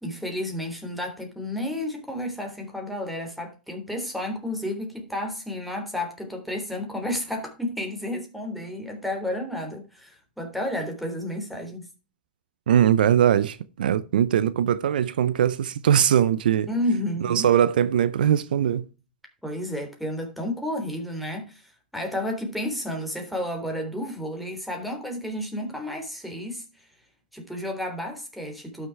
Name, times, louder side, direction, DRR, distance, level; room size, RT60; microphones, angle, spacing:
voice 1, 0.0-11.9 16.7-17.5 19.4-26.6 27.3-28.9, left 1 dB, ahead, 3.5 m, -31 dB
voice 2, 12.7-16.7 17.2-18.8, right 9 dB, 75° right, 0.7 m, -21 dB
12.0 x 6.5 x 4.7 m
hypercardioid pair, 120°, 5 cm